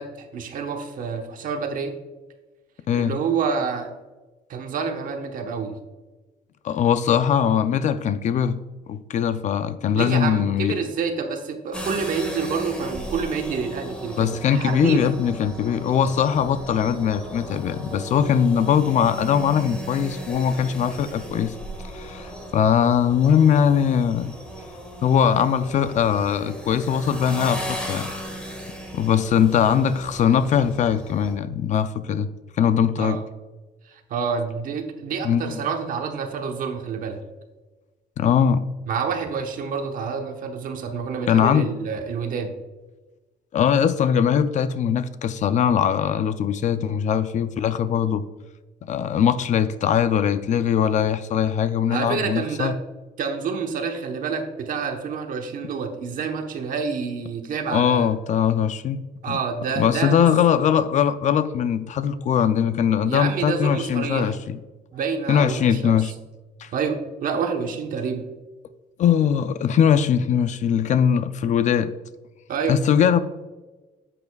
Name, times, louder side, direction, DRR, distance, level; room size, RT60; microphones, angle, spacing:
voice 1, 0.0-2.0 2.9-3.9 4.5-5.8 9.9-15.1 33.0-33.2 33.9-37.2 38.9-42.5 51.9-52.8 53.2-58.1 59.2-60.3 63.1-64.3 64.9-66.0 66.7-68.3 72.5-72.8, right 5 dB, 55° right, 5 dB, 1.1 m, -28 dB
voice 2, 2.9-3.2 6.6-8.6 8.9-10.7 14.2-21.5 21.9-24.3 25.0-28.1 28.9-32.3 32.6-33.2 35.2-35.6 38.2-38.7 41.3-41.7 43.5-48.2 48.8-52.7 57.7-59.4 59.8-64.6 65.3-66.1 66.6-66.7 69.0-71.9 72.7-73.2, left 8 dB, 50° left, 13 dB, 0.4 m, -21 dB
sound 1, 11.7-31.3, equal, 5° left, 1.7 m, -36 dB
10.5 x 8.4 x 2.3 m, 1.2 s
cardioid pair, 145°, 16 cm